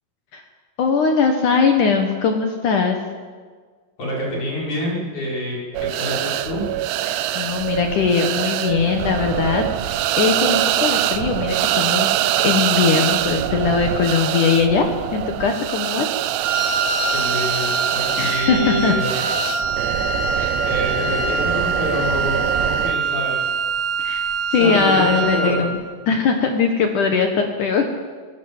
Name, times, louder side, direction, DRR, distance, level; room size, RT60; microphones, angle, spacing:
voice 1, 0.8-3.0 7.1-12.2 12.4-16.1 18.2-18.9 20.4-20.6 24.0-24.2 24.5-25.8 26.1-27.8, left 5 dB, 70° left, 5 dB, 1.9 m, -20 dB
voice 2, 4.0-6.7 17.1-19.3 19.9-20.1 20.6-23.4 24.6-25.7, equal, 40° left, -3 dB, 6.4 m, -27 dB
sound 1, 5.7-23.0, right 13 dB, 80° right, 2.6 m, -24 dB
Wind instrument woodwind instrument, 16.4-25.7, right 4 dB, 45° right, 4.9 m, -24 dB
24.5 x 17.5 x 7.4 m, 1.5 s
omnidirectional pair, 5.7 m